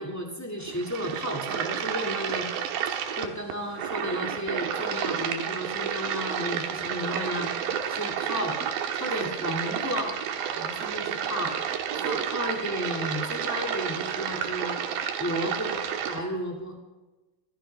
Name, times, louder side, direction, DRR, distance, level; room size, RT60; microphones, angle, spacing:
voice 1, 0.0-2.5 3.1-7.5 7.8-8.6 8.9-10.1 10.5-14.8 15.2-15.8 16.1-16.7, equal, 10° left, 0 dB, 0.7 m, -33 dB
sound 1, 0.6-16.2, right 8 dB, 75° right, 2.8 m, -31 dB
26.0 x 14.5 x 3.4 m, 1.2 s
omnidirectional pair, 4.3 m